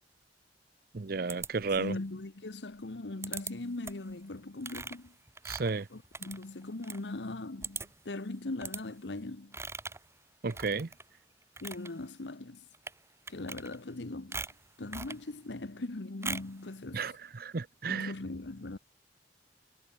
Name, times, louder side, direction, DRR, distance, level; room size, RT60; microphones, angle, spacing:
voice 1, 0.9-1.9 5.4-5.9 10.4-10.9 16.9-18.1, right 4 dB, 55° right, 0.6 m, -33 dB
sound 1, 1.3-2.0 3.2-3.5 3.8-4.1 4.6-7.0 7.3-7.4 7.6-8.1 8.6-8.8 9.5-10.1 10.5-11.1 11.4-11.9 12.7-13.0 13.3-14.0 14.3-15.2 16.2-16.6, right 4 dB, 15° right, 1.8 m, -41 dB
voice 2, 1.8-5.1 5.9-9.6 11.6-12.6 13.3-14.5 14.8-17.1 17.9-18.8, left 2 dB, 75° left, 1.1 m, -40 dB
head